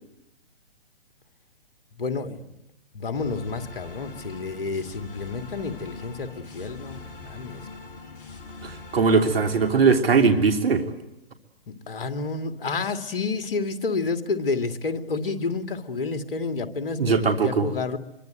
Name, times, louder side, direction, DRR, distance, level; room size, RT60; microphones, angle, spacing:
voice 1, 1.9-2.6 2.9-7.9 11.9-18.0, left 4 dB, 60° left, 8 dB, 2.4 m, -30 dB
sound 1, 3.1-10.0, left 3 dB, 25° left, 7.4 m, -42 dB
voice 2, 8.6-10.8 17.0-17.7, right 5 dB, 70° right, 7 dB, 3.3 m, -20 dB
25.5 x 24.0 x 9.2 m, 0.85 s
figure-of-eight pair, 135°, 31 cm